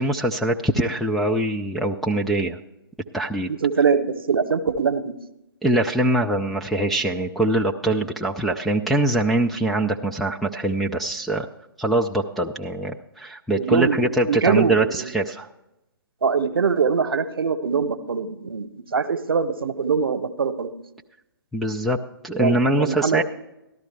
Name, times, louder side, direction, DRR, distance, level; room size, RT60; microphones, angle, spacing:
voice 1, 0.0-2.6 3.1-3.5 5.6-11.5 11.8-15.5 21.5-22.0 22.2-23.2, right 1 dB, ahead, -2 dB, 0.3 m, -23 dB
voice 2, 3.5-5.1 13.6-15.1 16.2-20.7 22.4-23.2, right 5 dB, 70° right, 11 dB, 0.9 m, -23 dB
13.5 x 12.0 x 3.3 m, 0.90 s
figure-of-eight pair, 130°, 12 cm